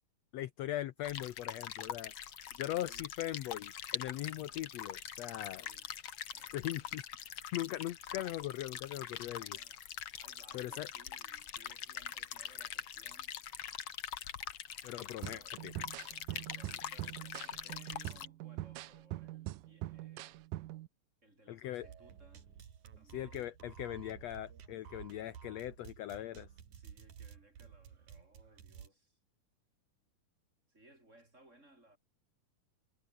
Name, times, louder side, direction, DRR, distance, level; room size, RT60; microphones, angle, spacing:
voice 1, 0.3-2.1 2.6-5.6 6.5-7.0 7.5-9.6 10.5-10.9 14.8-15.7 21.5-21.9 23.0-26.5, left 13 dB, 70° left, 1.7 m, -40 dB
sound 1, 1.0-18.3, left 10 dB, 55° left, 2.0 m, -44 dB
voice 2, 2.5-3.1 5.5-5.9 6.3-7.0 9.4-9.8 10.2-13.4 15.0-15.5 16.3-20.5 21.2-22.5 23.0-23.5 26.2-26.3 26.7-29.2 30.7-32.0, right 1 dB, 20° right, 6.8 m, -63 dB
sound 2, 15.2-20.9, right 17 dB, 85° right, 2.4 m, -43 dB
sound 3, 21.8-28.9, right 8 dB, 60° right, 3.7 m, -53 dB
omnidirectional pair, 3.9 m